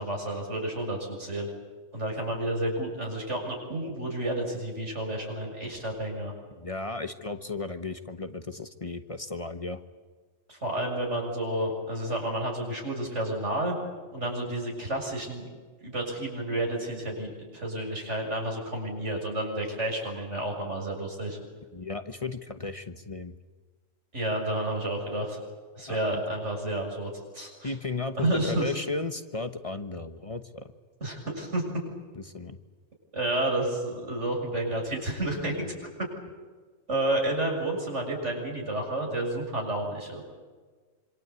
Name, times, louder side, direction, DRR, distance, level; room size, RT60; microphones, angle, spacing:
voice 1, 0.0-1.5 1.9-6.3 10.5-13.8 14.1-15.5 15.8-21.4 24.1-25.4 25.8-27.7 28.1-28.7 31.0-31.6 33.1-35.7 36.9-40.2, right 1 dB, 90° right, 1 dB, 7.4 m, -30 dB
voice 2, 6.5-9.8 21.7-23.3 25.9-26.2 27.6-30.7 32.1-32.6 35.6-35.7, left 3 dB, 30° left, 8 dB, 1.2 m, -35 dB
26.5 x 25.5 x 8.3 m, 1.4 s
omnidirectional pair, 1.2 m